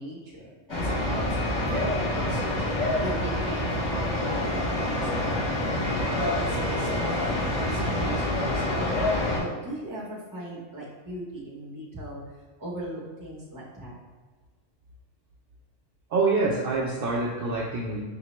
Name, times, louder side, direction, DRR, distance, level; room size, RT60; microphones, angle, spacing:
voice 1, 0.0-2.6 3.0-5.6 6.1-9.1 9.3-14.0, right 1 dB, 20° right, -4 dB, 0.6 m, -38 dB
sound 1, 0.7-9.4, left 1 dB, 85° left, 1.2 m, -27 dB
voice 2, 16.1-18.0, right 3 dB, 60° right, -3 dB, 0.6 m, -26 dB
5.2 x 2.1 x 2.9 m, 1.4 s
omnidirectional pair, 1.3 m